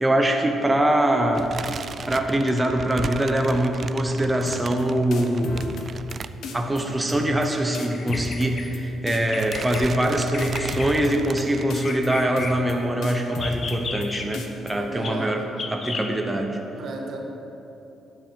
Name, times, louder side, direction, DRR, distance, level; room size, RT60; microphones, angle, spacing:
voice 1, 0.0-1.5 2.1-5.7 6.5-15.5 15.7-16.6, right 1 dB, 15° right, 3 dB, 0.8 m, -23 dB
sound 1, 1.3-6.9 7.2-7.4 7.7-7.8 8.7-9.0 9.3-11.6, right 6 dB, 45° right, 0.3 m, -36 dB
sound 2, 4.4-4.8 5.1-6.1 6.4-6.8 7.1-7.5 7.7-8.8 9.1-9.4 9.7-10.1 10.4-11.4 11.7-12.1 12.4-12.7 13.0-14.1 14.3-14.7, left 4 dB, 75° left, 1.0 m, -35 dB
Bird vocalization bird call bird song, 7.9-8.7 9.1-9.8 10.3-10.9 11.6-12.5 13.3-14.3 15.0-15.1 15.6-16.1, left 4 dB, 50° left, 1.0 m, -33 dB
voice 2, 14.7-15.5 16.8-17.2, right 3 dB, 70° right, 1 dB, 1.5 m, -34 dB
10.5 x 4.8 x 7.6 m, 3.0 s
cardioid pair, 90°, 0 cm